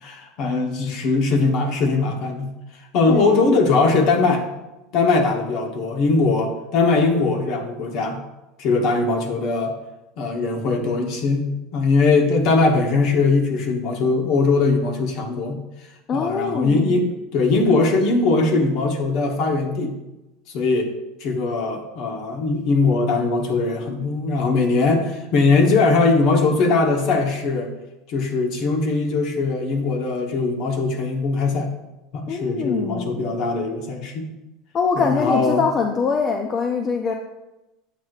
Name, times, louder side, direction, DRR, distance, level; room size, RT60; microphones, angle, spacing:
voice 1, 0.0-2.5 2.9-4.5 4.9-8.2 8.6-9.7 10.2-15.6 16.1-17.1 17.3-19.9 20.5-20.9 21.2-27.7 28.1-31.7 32.1-34.3 35.0-35.7, left 3 dB, 55° left, 4 dB, 1.1 m, -20 dB
voice 2, 16.1-16.8 32.3-33.3 34.7-37.1, left 5 dB, 35° left, 3 dB, 0.5 m, -23 dB
8.1 x 6.3 x 2.4 m, 0.98 s
supercardioid pair, 130°, 0 cm